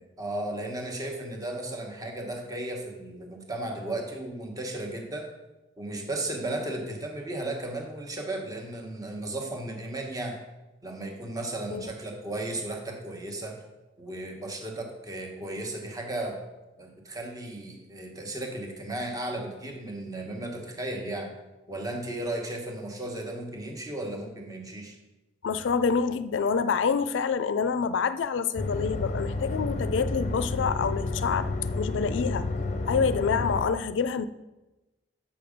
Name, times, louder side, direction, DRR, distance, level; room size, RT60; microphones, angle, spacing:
voice 1, 0.2-5.3 5.8-10.4 10.8-13.6 14.0-16.4 16.8-21.3 21.7-25.0, right 1 dB, 20° right, 2 dB, 1.1 m, -35 dB
voice 2, 25.4-32.5 32.9-34.3, left 6 dB, 85° left, 13 dB, 0.4 m, -27 dB
sound 1, 28.6-33.7, left 2 dB, 40° left, 0.6 m, -30 dB
7.1 x 6.0 x 5.0 m, 1.1 s
head